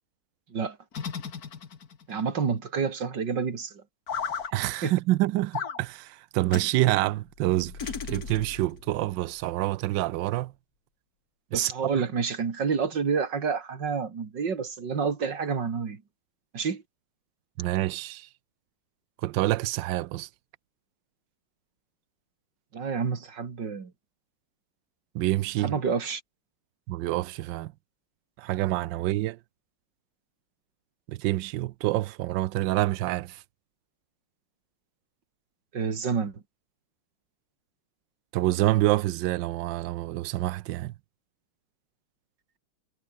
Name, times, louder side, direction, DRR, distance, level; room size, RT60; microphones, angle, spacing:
sound 1, 0.9-2.1 4.1-4.5 5.5-5.8 6.5-6.7 7.8-8.6, left 6 dB, 45° left, 2.1 m, -34 dB
voice 1, 2.1-3.8 4.8-4.9 11.5-16.0 16.5-16.8 22.7-23.9 25.6-26.2 35.7-36.4, right 5 dB, 55° right, 3.0 m, -29 dB
voice 2, 4.5-7.8 8.1-10.5 11.5-12.0 17.6-18.3 19.2-20.3 25.1-25.8 26.9-27.7 28.4-29.4 31.1-33.4 38.3-40.9, right 16 dB, 70° right, 1.2 m, -27 dB
sound 2, 7.2-9.8, left 4 dB, 65° left, 4.9 m, -44 dB
omnidirectional pair, 2.4 m